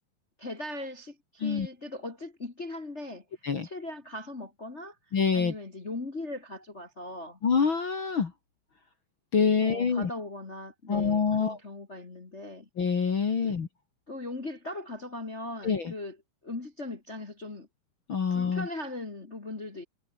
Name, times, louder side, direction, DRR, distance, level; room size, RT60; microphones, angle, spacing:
voice 1, 0.4-3.2 3.6-7.4 9.6-12.7 13.4-13.6 14.1-16.2 16.4-17.7 18.3-19.8, left 2 dB, 70° left, 0.6 m, -39 dB
voice 2, 5.1-5.5 7.4-8.3 9.3-10.1 10.9-11.6 12.8-13.7 15.6-15.9 18.1-18.7, left 6 dB, 45° left, 1.6 m, -26 dB
omnidirectional pair, 5.2 m